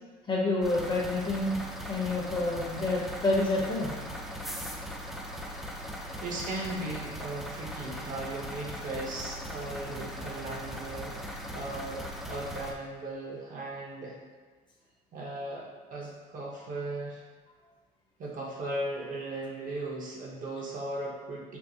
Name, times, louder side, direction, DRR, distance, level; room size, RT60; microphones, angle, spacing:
voice 1, 0.3-1.6 1.9-3.9, left 2 dB, 25° left, -3 dB, 0.8 m, -28 dB
sound 1, 0.6-12.7, equal, ahead, 0.4 m, -39 dB
voice 2, 6.2-14.2 15.1-17.2 18.2-21.6, right 2 dB, 50° right, -3 dB, 0.9 m, -37 dB
4.5 x 2.2 x 2.7 m, 1.5 s
cardioid pair, 110°, 17 cm